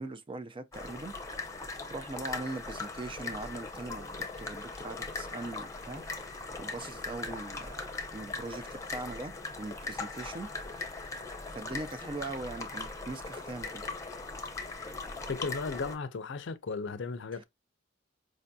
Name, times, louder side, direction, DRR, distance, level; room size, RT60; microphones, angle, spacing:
voice 1, 0.0-1.6 1.9-6.3 6.6-7.7 8.1-11.1 11.5-13.9, right 2 dB, 25° right, 0.4 m, -41 dB
sound 1, 0.7-16.0, left 3 dB, 15° left, 0.7 m, -40 dB
voice 2, 15.3-17.4, left 4 dB, 65° left, 0.5 m, -35 dB
5.0 x 2.7 x 2.2 m
head